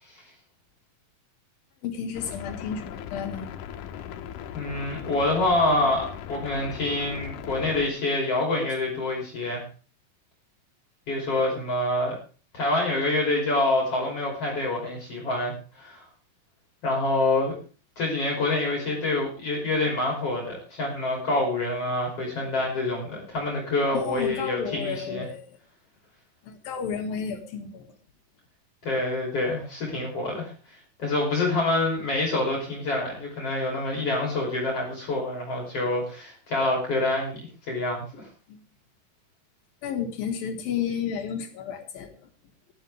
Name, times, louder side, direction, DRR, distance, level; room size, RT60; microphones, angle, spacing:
voice 1, 1.8-3.5 23.9-25.5 26.4-27.9 38.5-38.6 39.8-42.2, left 7 dB, 90° left, 5 dB, 3.7 m, -32 dB
sound 1, 2.2-7.9, left 9 dB, 70° left, 2.3 m, -38 dB
voice 2, 4.5-9.6 11.1-12.2 12.5-16.1 16.8-17.5 18.0-25.3 28.8-38.3, left 2 dB, 45° left, -1 dB, 4.1 m, -26 dB
18.5 x 11.5 x 3.4 m, 0.38 s
omnidirectional pair, 4.0 m